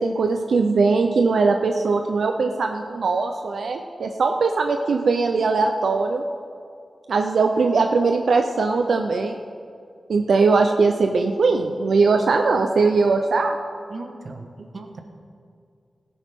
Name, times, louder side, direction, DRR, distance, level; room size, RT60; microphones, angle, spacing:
voice 1, 0.0-6.2 7.1-9.4 10.1-13.6, right 4 dB, 85° right, 4 dB, 0.6 m, -20 dB
voice 2, 13.9-14.5 14.7-15.0, right 3 dB, 50° right, 4 dB, 1.2 m, -36 dB
17.5 x 10.0 x 3.7 m, 2.3 s
wide cardioid pair, 135°, 0 cm